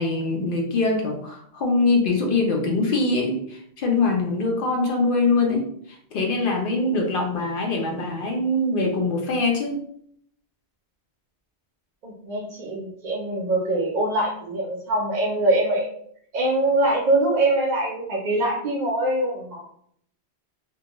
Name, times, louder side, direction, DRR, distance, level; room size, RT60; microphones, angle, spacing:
voice 1, 0.0-9.8, left 3 dB, 60° left, 1 dB, 0.6 m, -23 dB
voice 2, 12.0-15.9 16.3-19.6, right 2 dB, 55° right, -2 dB, 0.5 m, -23 dB
2.3 x 2.2 x 2.9 m, 0.67 s
omnidirectional pair, 1.1 m